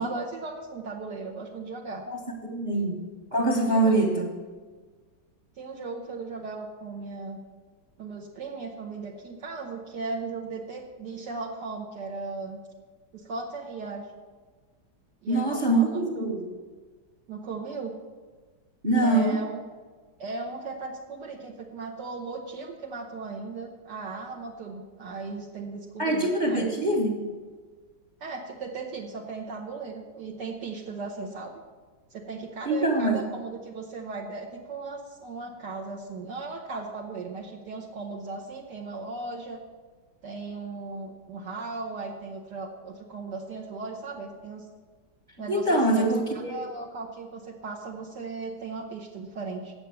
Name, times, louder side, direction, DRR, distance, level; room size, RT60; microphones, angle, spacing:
voice 1, 0.0-2.0 2.7-2.8 3.7-4.0 5.6-7.4 8.0-12.6 13.1-14.0 15.2-16.2 17.3-17.9 19.0-19.6 20.2-26.6 28.2-31.6 32.1-39.6 40.2-44.7 45.4-46.1 46.5-49.7, right 3 dB, 65° right, -2 dB, 1.5 m, -37 dB
voice 2, 2.1-3.0 3.3-4.3 15.3-16.5 18.8-19.4 26.0-27.2 32.6-33.2 45.5-46.6, right 2 dB, 30° right, 2 dB, 1.0 m, -24 dB
9.0 x 7.7 x 6.7 m, 1.4 s
omnidirectional pair, 2.1 m